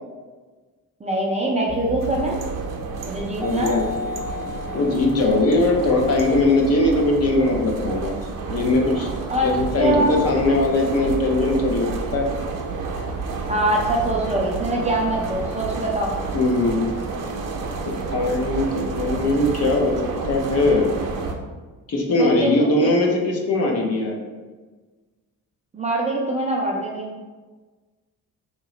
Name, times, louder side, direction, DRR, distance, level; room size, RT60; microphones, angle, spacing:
voice 1, 1.0-2.4 3.0-3.8 9.3-9.5 9.8-10.2 13.5-16.1 22.2-23.0 25.7-27.1, right 1 dB, 20° right, -2 dB, 0.4 m, -23 dB
sound 1, 1.7-6.3, equal, 90° left, 1.2 m, -34 dB
sound 2, 2.0-21.3, right 4 dB, 65° right, 0.7 m, -30 dB
voice 2, 3.4-3.9 4.7-8.1 8.5-9.1 9.4-12.3 16.3-16.8 17.9-19.9 20.3-20.9 21.9-24.2, left 2 dB, 45° left, 0 dB, 0.7 m, -20 dB
3.0 x 2.9 x 3.9 m, 1.3 s
cardioid pair, 145°, 35 cm